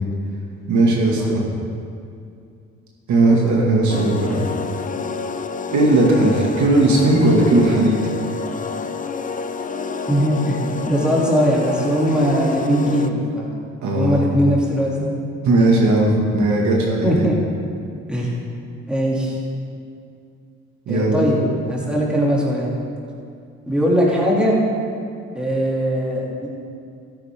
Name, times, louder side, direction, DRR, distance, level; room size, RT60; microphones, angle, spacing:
voice 1, 0.7-1.4 3.1-4.4 5.7-7.9 13.8-14.2 15.4-17.2 20.9-21.3, right 2 dB, 70° right, -2 dB, 2.2 m, -17 dB
sound 1, 3.9-13.1, left 5 dB, 25° left, 0.6 m, -28 dB
voice 2, 10.1-10.6 10.9-13.6 13.9-15.1 17.0-17.4 18.1-18.5 18.9-19.4 20.9-21.4 21.7-22.7 23.7-24.6 25.3-26.5, equal, 5° right, -5 dB, 2.8 m, -20 dB
13.0 x 10.5 x 3.8 m, 2.4 s
cardioid pair, 90°, 30 cm